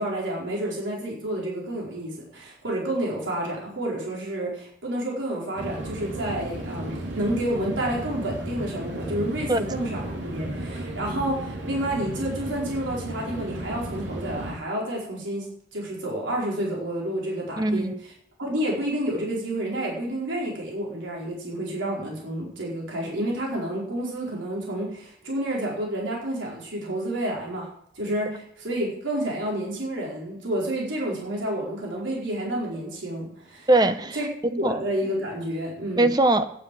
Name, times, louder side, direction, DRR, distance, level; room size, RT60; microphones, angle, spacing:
voice 1, 0.0-10.0 10.3-18.1 18.4-27.7 27.9-33.7 34.1-36.1, right 1 dB, 90° right, -3 dB, 4.6 m, -30 dB
sound 1, 5.6-14.5, right 1 dB, 75° right, 2.8 m, -34 dB
voice 2, 17.6-17.9 33.7-34.2 34.6-34.8 36.0-36.4, right 2 dB, 20° right, 10 dB, 0.8 m, -21 dB
9.7 x 9.5 x 7.7 m, 0.71 s
head